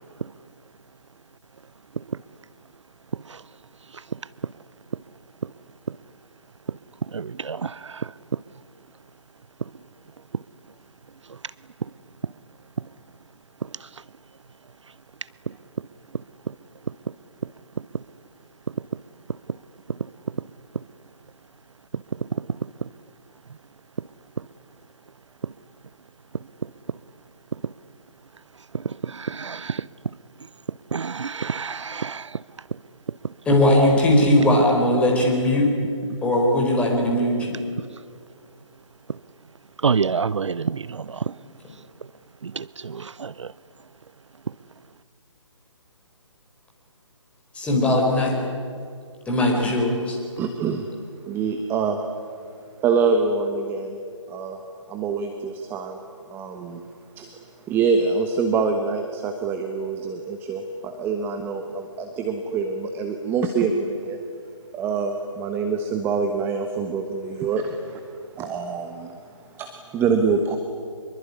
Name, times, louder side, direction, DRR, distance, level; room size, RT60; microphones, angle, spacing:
voice 1, 7.1-8.1 28.8-29.8 30.9-32.3 39.8-41.2 42.4-43.5, right 5 dB, 65° right, 0.6 m, -28 dB
voice 2, 33.4-35.7 36.2-37.6 47.5-48.4 49.3-50.2, left 1 dB, 5° left, 4.6 m, -19 dB
voice 3, 50.4-50.9 51.3-52.0 52.8-54.0 54.3-56.0 56.3-56.8 57.1-57.3 57.7-64.2 64.7-70.6, right 5 dB, 10° right, 1.3 m, -25 dB
25.0 x 23.0 x 9.8 m
figure-of-eight pair, 145°, 16 cm